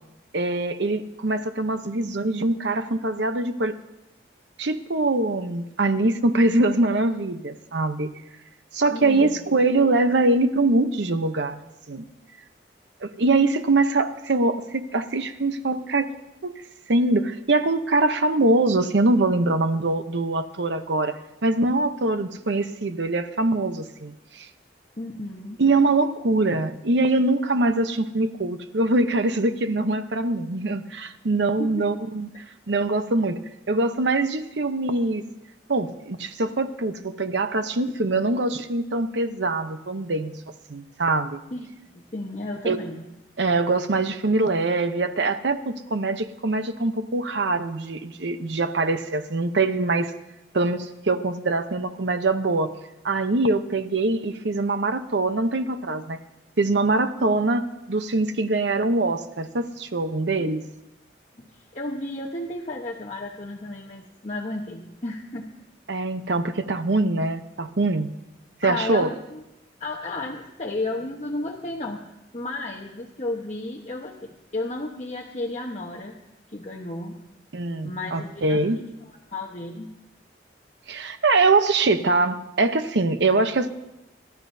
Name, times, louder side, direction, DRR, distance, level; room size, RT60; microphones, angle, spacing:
voice 1, 0.3-3.7 4.6-8.1 8.7-11.6 11.9-12.1 13.0-16.1 16.4-16.5 16.9-24.5 25.6-32.3 32.7-33.4 33.7-35.2 35.7-40.3 40.7-41.4 42.6-42.8 43.4-50.1 50.5-52.7 53.0-56.2 56.6-60.6 65.9-68.1 68.6-69.1 77.5-78.8 80.9-83.7, right 2 dB, 70° right, 9 dB, 0.8 m, -23 dB
voice 2, 8.9-9.4 25.0-25.6 31.6-31.7 41.5-41.7 41.9-43.0 60.4-60.5 61.4-65.5 68.6-69.4 69.8-72.0 72.3-76.2 76.5-77.2 77.8-79.9, left 2 dB, 40° left, -2 dB, 1.1 m, -33 dB
27.5 x 13.0 x 2.7 m, 0.93 s
head